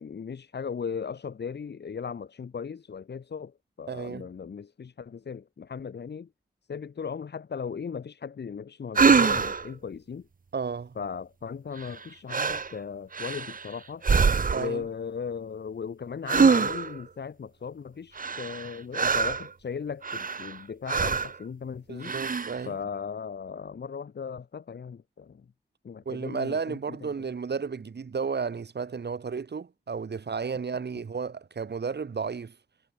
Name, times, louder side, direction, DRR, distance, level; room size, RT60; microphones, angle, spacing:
voice 1, 0.0-6.3 6.7-10.3 10.9-14.0 14.5-22.1 22.6-25.4 25.8-27.1, left 6 dB, 90° left, 1.5 m, -37 dB
voice 2, 3.9-4.3 10.5-11.0 14.5-14.8 21.9-22.8 26.0-32.5, right 5 dB, 80° right, 3.0 m, -33 dB
sound 1, 8.9-9.7 11.8-12.0 12.3-12.7 13.1-13.7 14.0-14.8 16.3-17.0 18.2-19.5 20.0-20.6 20.9-21.4 22.0-22.6, right 5 dB, 55° right, 1.0 m, -24 dB
wide cardioid pair, 85°, 17 cm